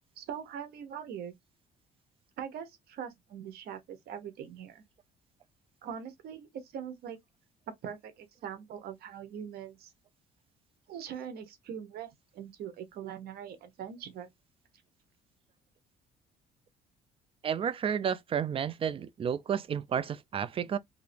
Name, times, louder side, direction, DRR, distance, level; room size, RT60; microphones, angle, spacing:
voice 1, 0.2-1.3 2.4-4.8 5.8-7.2 7.8-9.9 10.9-14.3, right 8 dB, 65° right, 0.9 m, -42 dB
voice 2, 17.4-20.8, right 8 dB, 35° right, 0.4 m, -31 dB
2.9 x 2.6 x 3.3 m
cardioid pair, 110°, 17 cm